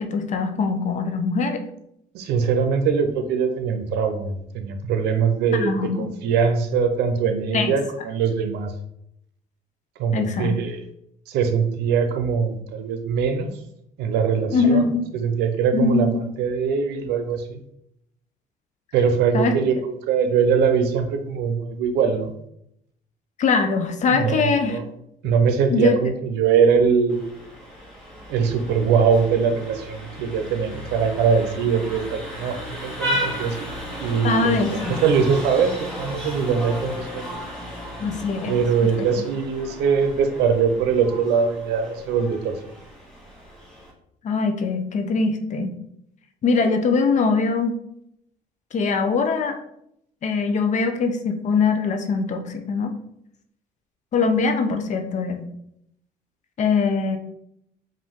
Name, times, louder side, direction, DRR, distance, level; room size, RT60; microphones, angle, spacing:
voice 1, 0.0-1.6 5.5-6.1 7.5-7.7 10.1-10.6 14.5-15.1 15.7-16.1 19.3-19.5 23.4-24.8 25.7-26.0 34.2-35.0 38.0-39.1 44.2-45.8 46.4-47.7 48.7-49.6 50.2-53.0 54.1-55.5 56.6-57.2, left 4 dB, 45° left, 7 dB, 0.6 m, -22 dB
voice 2, 2.1-8.7 10.0-10.8 11.3-13.5 14.0-16.1 16.4-17.6 18.9-22.3 24.1-24.9 25.2-27.2 28.3-33.7 34.0-35.7 36.0-37.3 38.5-42.5, right 6 dB, 80° right, 7 dB, 0.6 m, -22 dB
Vehicle horn car horn honking, 27.1-43.9, equal, 5° left, 1.4 m, -34 dB
5.1 x 2.6 x 3.5 m, 0.76 s
cardioid pair, 110°, 17 cm